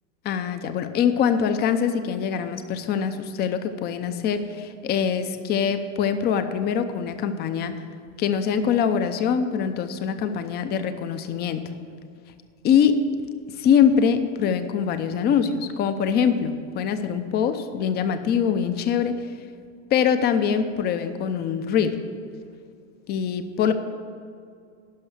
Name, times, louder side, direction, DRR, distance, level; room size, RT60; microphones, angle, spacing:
voice 1, 0.2-7.7 8.2-11.6 12.6-13.0 13.6-19.2 19.9-22.0 23.1-23.7, left 7 dB, 25° left, 9 dB, 0.6 m, -23 dB
12.0 x 5.6 x 8.1 m, 2.3 s
supercardioid pair, 140°, 40 cm